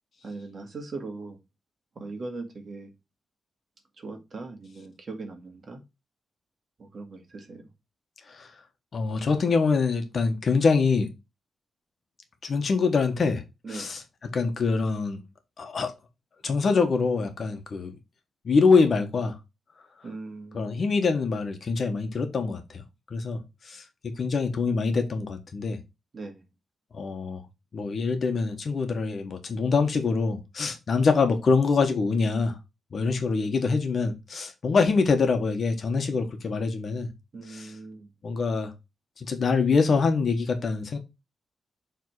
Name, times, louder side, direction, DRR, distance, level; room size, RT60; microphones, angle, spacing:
voice 1, 0.2-1.4 2.0-2.9 4.0-5.8 6.8-7.7 13.6-13.9 20.0-20.7 26.1-26.4 37.3-38.1, right 3 dB, 40° right, 1.9 m, -39 dB
voice 2, 8.9-11.1 12.4-13.4 13.7-15.2 15.6-15.9 16.4-17.9 18.4-19.3 20.5-22.6 23.1-23.4 23.7-25.8 26.9-27.4 27.7-32.6 32.9-37.1 37.5-37.7 38.2-38.7 39.2-41.0, left 4 dB, 50° left, 1.3 m, -24 dB
7.3 x 3.6 x 4.7 m
wide cardioid pair, 145°, 0 cm